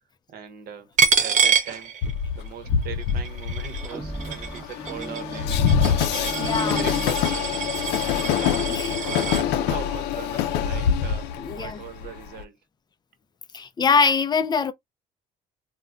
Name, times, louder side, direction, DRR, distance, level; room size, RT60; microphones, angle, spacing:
voice 1, 0.3-0.9 1.2-1.9 2.3-5.7 6.1-7.6 8.1-8.7 9.0-12.6, right 8 dB, 65° right, 0.9 m, -40 dB
Coin (dropping), 1.0-2.5 2.8-9.4, right 6 dB, 45° right, 0.5 m, -26 dB
Train, 2.0-12.4, left 8 dB, 90° left, 0.4 m, -25 dB
sound 1, 3.6-7.9, right 1 dB, 5° right, 0.8 m, -36 dB
voice 2, 6.4-6.9 8.7-9.0 11.4-11.8 13.5-14.7, left 5 dB, 25° left, 0.4 m, -23 dB
2.2 x 2.2 x 3.6 m
cardioid pair, 110°, 17 cm